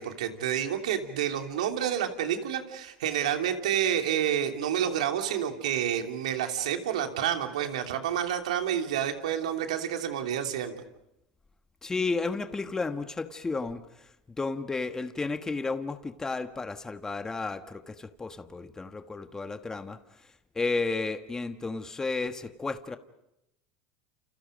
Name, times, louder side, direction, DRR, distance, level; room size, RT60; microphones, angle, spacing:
voice 1, 0.0-10.7, right 9 dB, 85° right, 5 dB, 2.9 m, -29 dB
voice 2, 11.8-14.1 14.4-23.0, left 3 dB, 15° left, 8 dB, 1.4 m, -33 dB
29.5 x 29.0 x 5.2 m, 0.87 s
supercardioid pair, 100°, 4 cm